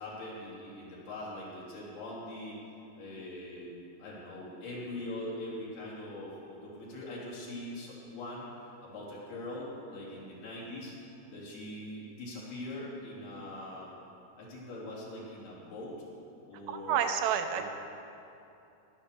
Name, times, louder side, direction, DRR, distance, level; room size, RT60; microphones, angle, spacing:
voice 1, 0.0-2.6 3.0-3.7 4.0-10.9 11.3-13.9 14.4-16.0 16.5-17.0 17.5-17.6, left 1 dB, 60° left, -6 dB, 5.1 m, -42 dB
voice 2, 16.7-17.6, right 8 dB, 85° right, 6 dB, 2.7 m, -29 dB
14.5 x 12.0 x 6.8 m, 2.8 s
omnidirectional pair, 5.2 m